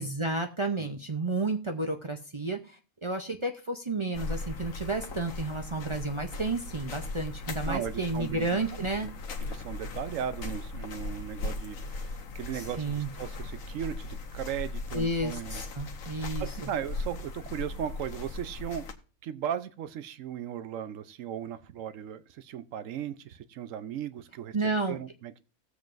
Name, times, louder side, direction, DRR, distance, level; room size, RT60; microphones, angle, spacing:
voice 1, 0.0-9.1 12.5-13.1 14.9-16.7 24.5-25.0, right 2 dB, 35° right, 3 dB, 0.5 m, -31 dB
sound 1, 4.1-18.9, left 3 dB, 70° left, 1.3 m, -38 dB
voice 2, 7.7-9.1 9.4-15.6 16.2-18.8 19.2-24.6 24.9-25.4, right 9 dB, 70° right, 13 dB, 1.0 m, -37 dB
18.5 x 7.5 x 2.6 m, 0.35 s
omnidirectional pair, 1.5 m